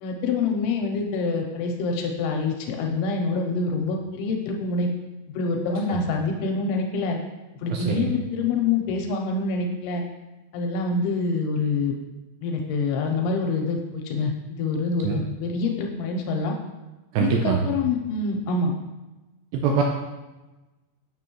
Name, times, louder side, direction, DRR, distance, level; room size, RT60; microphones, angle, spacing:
voice 1, 0.0-4.9 5.3-7.2 7.6-10.0 10.5-11.9 12.4-16.5 17.2-18.7, left 4 dB, 80° left, 2 dB, 2.5 m, -26 dB
voice 2, 7.7-8.1 15.0-15.3 17.1-17.7 19.5-19.8, right 6 dB, 85° right, 1 dB, 2.1 m, -23 dB
7.0 x 6.4 x 3.0 m, 1.1 s
omnidirectional pair, 4.9 m